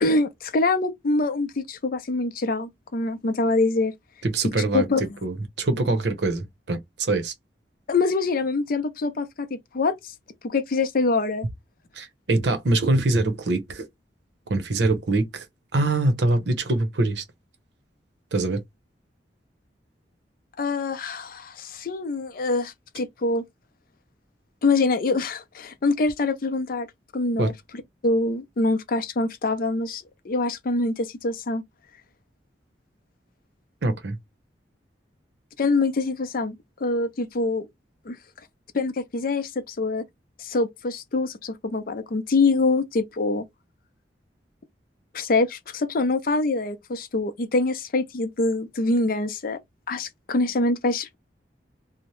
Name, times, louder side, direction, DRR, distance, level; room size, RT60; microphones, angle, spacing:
voice 1, 0.0-3.9 4.7-5.1 7.9-10.1 10.4-11.5 20.6-23.4 24.6-26.9 27.1-27.5 28.0-31.6 35.6-36.6 36.8-37.7 38.1-38.2 38.7-40.0 40.4-43.5 45.1-49.6 49.9-51.2, left 3 dB, 55° left, 0.5 m, -24 dB
voice 2, 4.2-4.9 5.2-7.3 11.9-13.9 14.5-15.4 15.7-17.2 18.3-18.6 27.4-27.5 33.8-34.2, right 2 dB, 75° right, 0.7 m, -24 dB
2.8 x 2.0 x 3.0 m
head